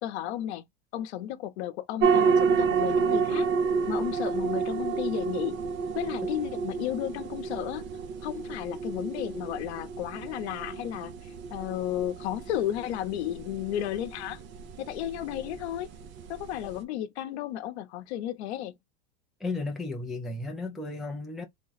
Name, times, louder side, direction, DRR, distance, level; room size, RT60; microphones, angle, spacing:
voice 1, 0.0-0.6 0.9-3.5 3.9-5.6 5.9-7.8 8.2-14.4 14.8-15.9 16.3-18.7, left 12 dB, 70° left, 0.9 m, -33 dB
sound 1, 2.0-16.8, right 5 dB, 35° right, 0.7 m, -30 dB
voice 2, 19.4-21.4, left 3 dB, ahead, 0.4 m, -34 dB
3.6 x 2.1 x 4.0 m
supercardioid pair, 150°, 34 cm